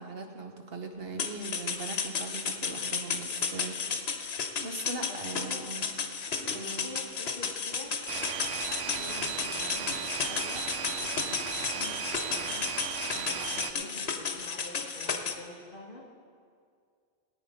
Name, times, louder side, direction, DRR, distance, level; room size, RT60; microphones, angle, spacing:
voice 1, 0.0-5.8 6.3-6.9 13.9-14.0, right 3 dB, 65° right, 4 dB, 1.4 m, -41 dB
sound 1, 1.2-15.3, left 6 dB, 80° left, 1.2 m, -33 dB
voice 2, 5.1-5.9 6.5-8.3 8.5-12.7 13.1-16.0, left 2 dB, 60° left, -2 dB, 2.6 m, -47 dB
sound 2, 8.1-13.7, right 7 dB, 90° right, 0.9 m, -36 dB
18.0 x 8.8 x 5.1 m, 2.2 s
omnidirectional pair, 1.1 m